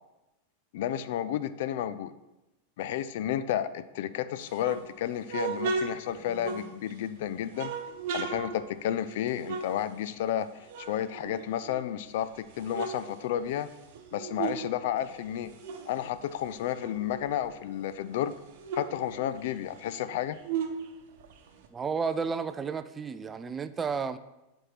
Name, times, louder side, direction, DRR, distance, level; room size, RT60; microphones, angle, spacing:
voice 1, 0.7-2.1 2.8-7.7 8.1-10.5 10.8-13.7 14.1-15.5 15.9-18.4 18.7-20.4, left 11 dB, 55° left, 13 dB, 0.4 m, -32 dB
sound 1, 4.4-7.1 7.5-10.4 10.7-12.0 12.4-14.7 15.0-17.5 17.9-18.0 18.2-21.7, right 5 dB, 50° right, 0.9 m, -37 dB
voice 2, 21.7-24.2, right 5 dB, 20° right, 12 dB, 0.4 m, -32 dB
7.8 x 4.4 x 5.7 m, 0.96 s
figure-of-eight pair, 90°, 0 cm